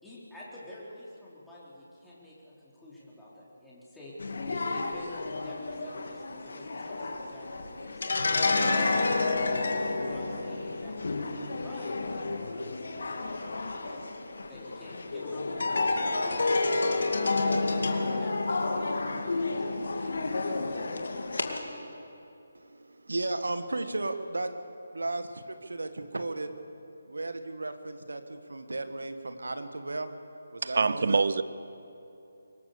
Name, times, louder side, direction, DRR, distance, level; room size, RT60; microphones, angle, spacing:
voice 1, 0.0-4.1 4.5-8.2 8.7-9.0 9.5-12.7 13.0-14.0 14.4-16.8 17.2-17.7 18.2-20.4 20.9-21.2, left 1 dB, 5° left, -9 dB, 4.4 m, -48 dB
sound 1, 4.2-21.6, left 3 dB, 60° left, 2.2 m, -30 dB
voice 2, 22.6-24.5 24.9-26.5 27.1-30.1 30.5-31.2, right 2 dB, 75° right, 8 dB, 1.8 m, -35 dB
voice 3, 30.6-31.4, right 4 dB, 55° right, 15 dB, 0.8 m, -25 dB
24.0 x 19.5 x 6.9 m, 2.8 s
figure-of-eight pair, 150°, 0 cm